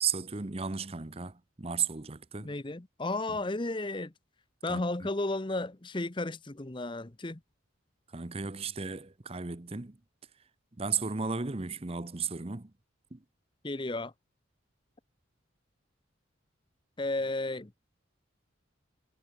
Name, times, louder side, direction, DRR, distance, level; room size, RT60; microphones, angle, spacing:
voice 1, 0.0-2.5 3.3-3.4 4.7-4.8 8.1-10.0 10.8-12.7 13.1-13.2, right 6 dB, 30° right, 0.8 m, -34 dB
voice 2, 2.4-4.1 4.6-7.4 13.6-14.1 17.0-17.7, left 2 dB, 25° left, 0.8 m, -33 dB
head